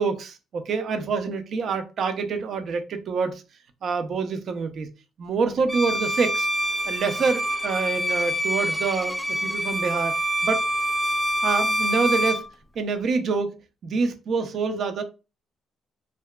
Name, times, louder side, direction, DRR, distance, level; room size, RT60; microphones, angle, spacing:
voice 1, 0.0-3.4 3.8-4.9 5.2-6.5 6.9-10.1 10.4-10.6 11.4-12.5 12.8-13.5 13.8-15.0, right 5 dB, 60° right, 0.4 m, -26 dB
Bowed string instrument, 5.7-12.5, equal, ahead, 0.4 m, -26 dB
2.7 x 2.2 x 2.2 m
cardioid pair, 90°, 0 cm